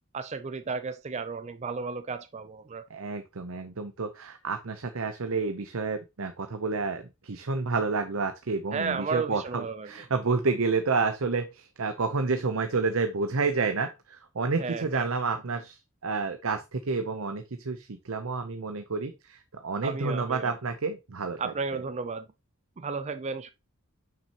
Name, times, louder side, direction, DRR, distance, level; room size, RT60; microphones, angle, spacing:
voice 1, 0.1-2.8 8.7-9.9 14.6-15.1 19.8-20.5 21.4-22.3 22.8-23.5, right 4 dB, 30° right, 0.4 m, -33 dB
voice 2, 2.9-21.5, right 4 dB, 65° right, 0.7 m, -30 dB
7.2 x 6.0 x 2.9 m
head